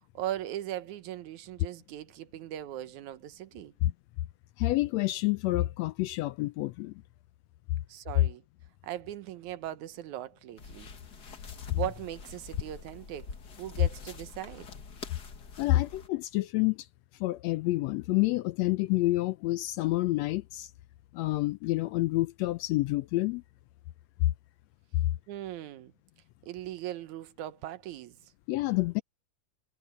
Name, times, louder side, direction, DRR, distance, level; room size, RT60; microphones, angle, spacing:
voice 1, 0.1-3.7 7.9-8.4 8.8-10.9 11.4-14.7 25.3-25.9 26.4-28.3, right 13 dB, 80° right, 2.3 m, -39 dB
voice 2, 4.6-6.9 11.7-11.8 15.6-16.9 17.2-20.7 21.1-23.4 28.5-29.0, left 18 dB, 80° left, 1.6 m, -28 dB
sound 1, 10.6-16.1, left 4 dB, 40° left, 1.8 m, -46 dB
omnidirectional pair, 3.4 m